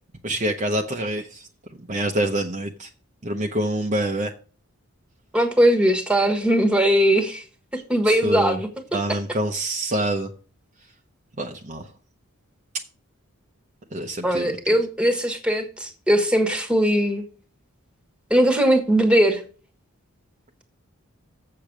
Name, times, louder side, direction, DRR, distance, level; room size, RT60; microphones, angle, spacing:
voice 1, 0.2-1.5 1.8-2.9 3.2-4.3 8.0-8.6 8.9-10.3 11.4-11.9 13.9-14.6, right 1 dB, 35° right, 3 dB, 0.7 m, -26 dB
voice 2, 5.3-7.4 7.9-8.7 14.2-17.2 18.3-19.4, right 1 dB, 5° right, 4 dB, 1.3 m, -20 dB
7.6 x 6.7 x 6.0 m, 0.39 s
head